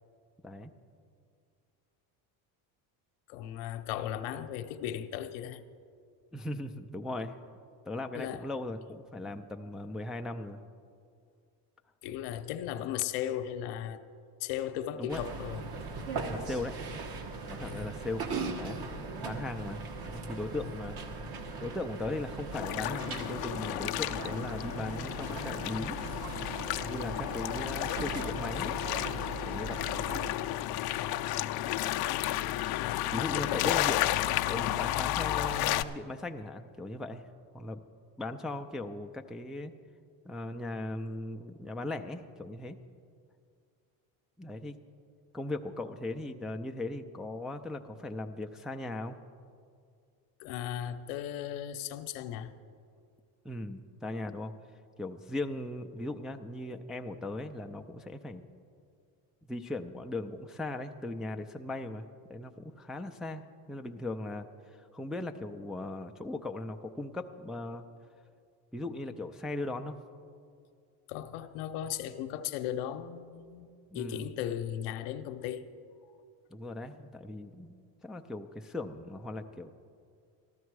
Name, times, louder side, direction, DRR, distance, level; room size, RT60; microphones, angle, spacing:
voice 1, 3.3-5.6 8.1-8.5 12.0-14.0 14.4-15.6 17.7-17.9 20.6-20.7 30.8-31.2 32.8-33.8 50.4-52.5 71.1-75.7, left 11 dB, 75° left, 0.9 m, -37 dB
voice 2, 6.3-7.4 7.8-10.6 15.0-15.2 16.3-16.8 17.5-18.3 18.5-18.8 19.1-21.2 21.6-26.0 26.8-28.7 29.5-29.8 33.1-37.2 37.5-37.8 38.2-39.7 40.2-42.8 44.4-44.8 45.3-49.2 53.4-54.5 55.0-58.5 59.5-67.8 68.7-70.0 73.9-74.3 76.5-77.8 78.0-79.7, left 2 dB, ahead, 0.4 m, -38 dB
sound 1, 15.1-30.3, right 3 dB, 50° right, 1.6 m, -39 dB
sound 2, 22.5-35.8, left 14 dB, 55° left, 0.5 m, -32 dB
13.5 x 13.0 x 4.7 m
supercardioid pair, 95°, 46 cm